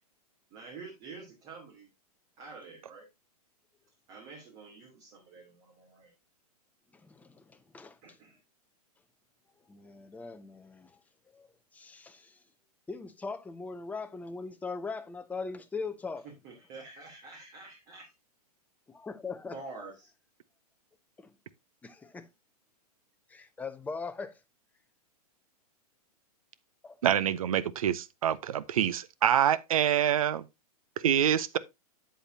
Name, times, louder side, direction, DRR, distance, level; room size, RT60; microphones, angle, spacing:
voice 1, 0.5-1.9 2.4-3.1 4.1-6.1 8.0-8.4 16.4-18.1 19.4-20.1, right 4 dB, 35° right, 2.9 m, -47 dB
voice 2, 6.9-8.0 9.7-11.0 11.3-12.4 12.9-16.3 18.9-19.6 21.2-21.4 21.8-22.3 23.3-24.3 26.8-27.0, left 4 dB, 5° left, 0.8 m, -40 dB
voice 3, 27.0-30.5 31.0-31.6, right 10 dB, 60° right, 0.7 m, -26 dB
8.0 x 7.9 x 2.7 m
figure-of-eight pair, 105°, 20 cm